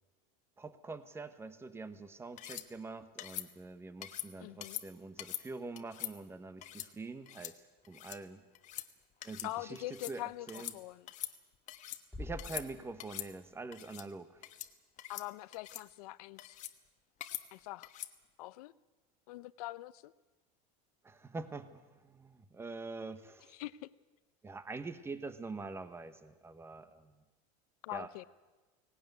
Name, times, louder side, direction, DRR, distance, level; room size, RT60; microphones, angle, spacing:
voice 1, 0.6-8.4 9.2-10.7 12.2-14.4 21.0-23.5 24.4-27.1 27.9-28.1, right 3 dB, 15° right, 1.2 m, -45 dB
sound 1, 2.4-2.7 3.2-3.5 4.0-4.3 4.6-4.8 5.2-5.4 5.8-6.1 6.6-6.9 7.3-7.5 7.8-8.2 8.5-8.9 9.2-9.5 9.7-10.2 10.5-10.8 11.1-12.0 12.4-12.7 13.0-13.3 13.7-14.1 14.4-14.7 15.0-15.3 15.5-15.8 16.4-16.7 17.2-17.4 17.8-18.1, left 13 dB, 40° left, 1.2 m, -43 dB
voice 2, 4.4-4.8 9.4-11.1 15.1-16.6 17.5-17.9 18.4-18.7 19.3-20.1 23.5-23.9 27.8-28.2, left 18 dB, 80° left, 0.7 m, -43 dB
sound 2, 12.1-14.1, left 2 dB, 5° left, 2.7 m, -48 dB
18.5 x 18.0 x 9.4 m
supercardioid pair, 135°, 19 cm